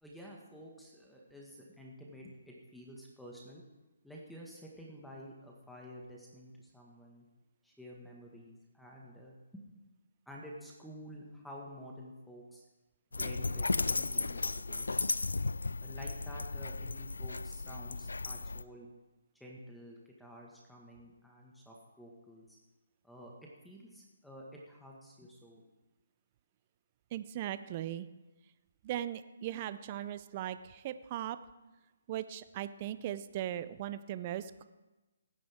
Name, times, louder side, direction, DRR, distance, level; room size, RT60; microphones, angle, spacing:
voice 1, 0.0-3.6 4.0-7.2 7.6-9.6 10.3-12.6 13.1-14.9 15.8-18.9 19.4-22.4 23.0-23.3 23.6-25.6, equal, ahead, -3 dB, 1.7 m, -50 dB
Dog, 13.1-18.6, left 3 dB, 85° left, 0.4 m, -35 dB
voice 2, 27.1-28.1 28.8-31.4 32.1-34.7, right 12 dB, 35° right, 13 dB, 0.6 m, -38 dB
18.0 x 10.5 x 3.7 m, 1.1 s
hypercardioid pair, 145°, 0 cm